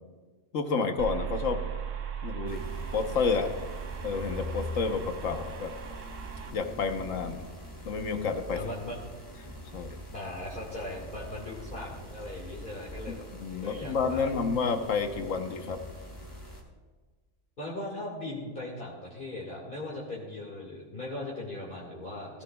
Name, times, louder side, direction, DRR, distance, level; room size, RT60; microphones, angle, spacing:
voice 1, 0.5-1.6 2.2-2.7 2.9-3.5 4.0-5.7 6.5-7.5 7.8-8.6 9.7-10.0 13.1-15.8, left 5 dB, 85° left, 6 dB, 1.4 m, -30 dB
sound 1, 1.0-6.5, right 8 dB, 80° right, 1.2 m, -38 dB
sound 2, 2.5-16.6, equal, 15° left, 2.2 m, -43 dB
voice 2, 8.5-9.0 10.1-13.2 13.6-14.4 17.6-22.4, left 1 dB, 40° left, -5 dB, 2.2 m, -39 dB
17.0 x 15.0 x 2.3 m, 1.4 s
omnidirectional pair, 1.3 m